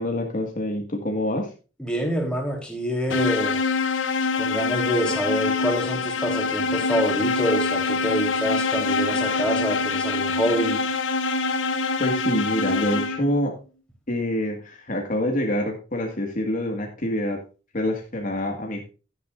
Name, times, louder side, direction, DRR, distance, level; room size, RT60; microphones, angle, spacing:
voice 1, 0.0-1.5 12.0-13.5 14.1-17.4 17.7-18.8, left 1 dB, 45° left, 1.9 m, -26 dB
voice 2, 1.8-3.6 4.3-10.8, equal, 5° left, 3.5 m, -26 dB
sound 1, 3.1-13.4, left 4 dB, 85° left, 0.9 m, -25 dB
12.5 x 10.5 x 2.5 m
head